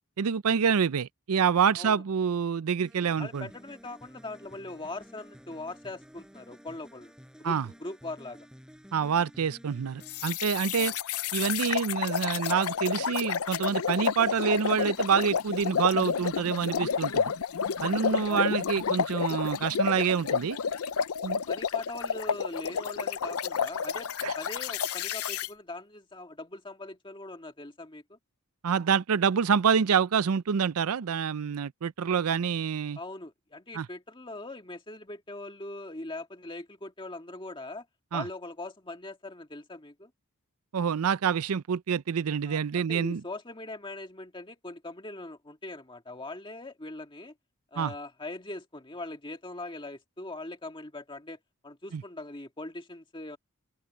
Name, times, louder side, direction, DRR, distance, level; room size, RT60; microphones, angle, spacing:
voice 1, 0.2-3.5 7.4-7.7 8.9-10.9 11.3-17.3 17.8-20.6 21.2-21.4 24.2-24.3 28.6-33.0 33.7-33.9 38.1-38.2 40.7-43.2 47.8-47.9 51.9-52.0, right 6 dB, 85° right, 0.5 m, -27 dB
sound 1, 2.8-10.5, equal, 5° right, 6.4 m, -52 dB
voice 2, 3.2-7.1 7.4-8.5 10.7-10.9 18.0-18.5 21.3-28.2 33.0-37.9 38.1-40.1 42.4-47.3 47.7-53.4, left 2 dB, 20° left, 2.0 m, -41 dB
sound 2, 10.1-25.5, left 7 dB, 80° left, 0.6 m, -30 dB
head